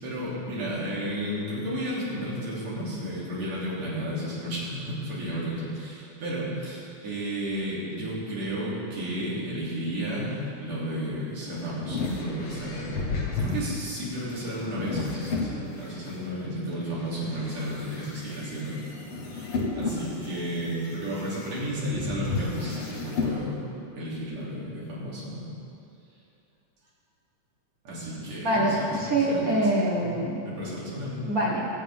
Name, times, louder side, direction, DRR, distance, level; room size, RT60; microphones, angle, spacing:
voice 1, 0.0-18.8 19.2-23.6 23.9-25.5 27.8-29.4 29.9-30.1 30.4-31.3, equal, 60° right, -8 dB, 4.3 m, -33 dB
sound 1, 11.1-16.1 16.7-23.4, left 3 dB, 55° left, 1.8 m, -33 dB
voice 2, 28.4-30.4 31.3-31.6, right 1 dB, 40° right, -3 dB, 1.3 m, -24 dB
22.0 x 7.5 x 3.7 m, 2.7 s
omnidirectional pair, 3.6 m